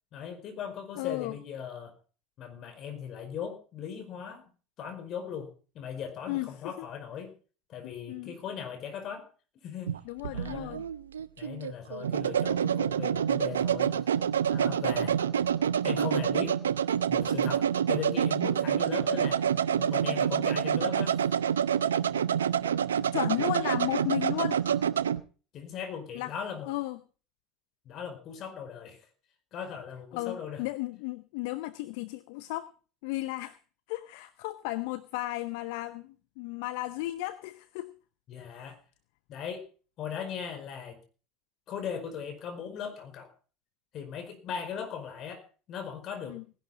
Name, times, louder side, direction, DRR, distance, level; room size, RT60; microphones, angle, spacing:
voice 1, 0.1-1.9 2.4-4.5 4.8-7.3 7.7-9.3 9.6-9.9 10.3-10.9 11.4-14.0 14.5-15.2 15.8-16.6 17.1-19.4 19.8-21.2 25.5-26.7 27.8-29.1 29.5-30.6 38.3-38.8 39.3-39.7 40.0-41.0 41.7-43.3 43.9-46.4, left 7 dB, 50° left, 8 dB, 4.9 m, -38 dB
voice 2, 1.0-1.4 6.3-6.9 7.8-8.3 10.1-10.8 23.1-24.6 26.1-26.3 26.6-27.0 30.1-32.7 33.0-33.6 33.9-37.9 38.5-38.7 46.3-46.4, left 18 dB, 65° left, 14 dB, 0.8 m, -34 dB
sound 1, 9.9-25.2, right 8 dB, 85° right, 0.6 m, -27 dB
19.0 x 11.5 x 3.9 m, 0.38 s
hypercardioid pair, 75°, 0 cm